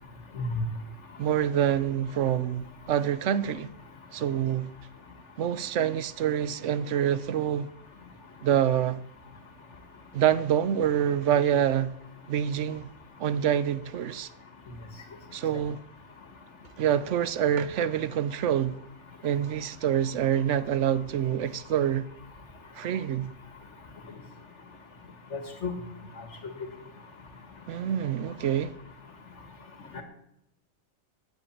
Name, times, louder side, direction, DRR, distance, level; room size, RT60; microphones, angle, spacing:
voice 1, 1.2-3.7 4.1-4.7 5.4-7.7 8.4-9.0 10.1-11.9 12.3-12.9 13.2-14.3 15.3-15.8 16.8-18.8 19.2-22.1 22.8-23.3 27.7-28.7, right 10 dB, 85° right, 1.0 m, -26 dB
voice 2, 25.3-25.7 29.9-30.0, left 3 dB, 75° left, 2.1 m, -32 dB
9.6 x 8.5 x 8.6 m
omnidirectional pair, 1.2 m